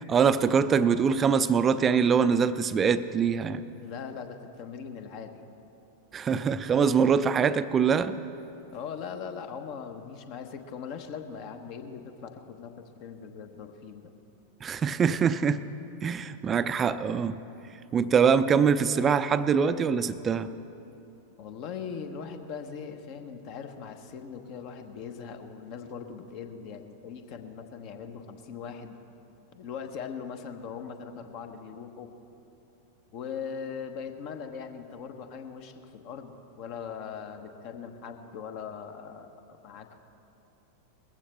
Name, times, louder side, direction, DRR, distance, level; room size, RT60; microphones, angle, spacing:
voice 1, 0.1-3.6 6.1-8.2 14.6-15.6 16.0-17.4 17.9-20.5, right 6 dB, 25° right, 13 dB, 0.5 m, -23 dB
voice 2, 3.7-5.3 8.7-14.1 21.4-29.0 29.5-32.1 33.1-40.0, left 6 dB, 45° left, 6 dB, 1.1 m, -40 dB
20.5 x 15.0 x 3.4 m, 2.9 s
figure-of-eight pair, 90°, 0 cm